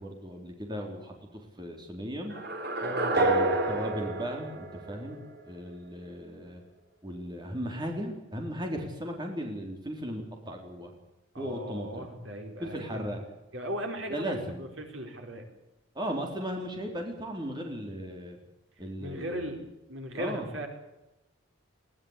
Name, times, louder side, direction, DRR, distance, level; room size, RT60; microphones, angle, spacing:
voice 1, 0.0-2.4 3.1-6.6 7.0-10.9 11.4-12.1 12.6-13.2 14.1-14.6 16.0-18.4 18.8-19.6 20.2-20.5, equal, 20° right, 2 dB, 3.9 m, -36 dB
sound 1, 2.3-5.4, right 2 dB, 50° right, 3.5 m, -29 dB
voice 2, 2.8-3.2 11.3-13.2 13.5-15.4 19.0-19.6 19.9-20.7, equal, 70° right, 3 dB, 4.8 m, -37 dB
21.5 x 18.0 x 8.2 m, 0.95 s
head